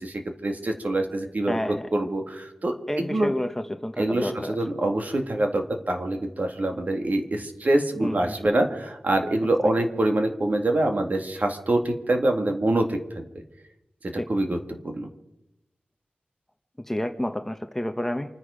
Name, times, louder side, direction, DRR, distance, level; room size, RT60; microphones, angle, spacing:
voice 1, 0.0-1.6 1.9-3.3 4.0-13.3 14.3-14.6 14.8-15.1, right 1 dB, 50° right, 4 dB, 2.1 m, -25 dB
voice 2, 1.5-1.9 2.9-4.6 8.0-8.2 9.6-9.7 14.1-14.3 16.8-18.4, left 1 dB, 10° left, 7 dB, 0.9 m, -30 dB
28.5 x 10.0 x 5.0 m, 0.91 s
wide cardioid pair, 100°, 3 cm